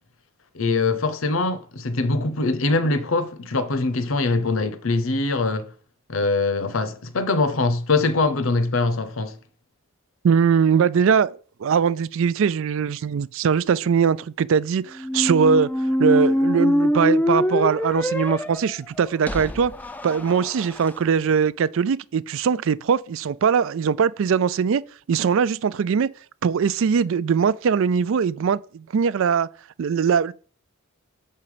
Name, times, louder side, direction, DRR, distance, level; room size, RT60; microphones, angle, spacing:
voice 1, 0.5-5.7 6.1-9.4, left 3 dB, 65° left, 0.8 m, -23 dB
voice 2, 10.2-15.7 16.0-19.7 20.0-24.8 25.1-26.1 26.4-29.5 29.8-30.3, right 6 dB, 65° right, 0.4 m, -21 dB
sound 1, 15.0-20.9, equal, 10° left, 0.4 m, -23 dB
6.8 x 5.5 x 4.9 m
head